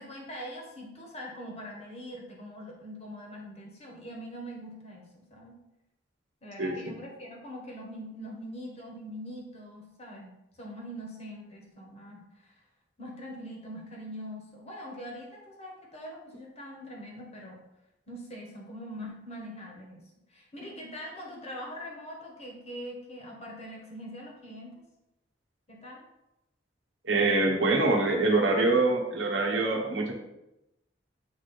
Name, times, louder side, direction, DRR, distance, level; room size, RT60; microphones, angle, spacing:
voice 1, 0.0-5.6 6.4-12.6 13.0-17.7 18.1-20.0 20.3-24.7 25.7-26.0, equal, 35° left, -1 dB, 1.3 m, -43 dB
voice 2, 6.6-6.9 27.0-30.1, right 2 dB, 85° right, 1 dB, 1.0 m, -25 dB
7.0 x 3.3 x 4.2 m, 0.90 s
head